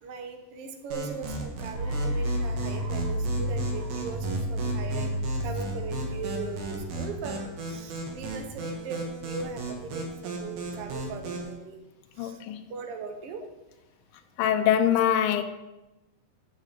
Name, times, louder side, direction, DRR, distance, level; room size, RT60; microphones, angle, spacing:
voice 1, 0.0-5.1 5.4-11.8 12.2-12.4 12.7-13.4, right 5 dB, 85° right, 5 dB, 1.3 m, -39 dB
sound 1, 0.9-11.5, right 3 dB, 60° right, 2.8 m, -36 dB
sound 2, 1.7-7.7, equal, 45° right, 2.4 m, -31 dB
voice 2, 12.2-12.6 14.4-15.4, left 10 dB, 80° left, 7 dB, 2.4 m, -23 dB
7.3 x 6.4 x 7.5 m, 0.98 s
omnidirectional pair, 4.2 m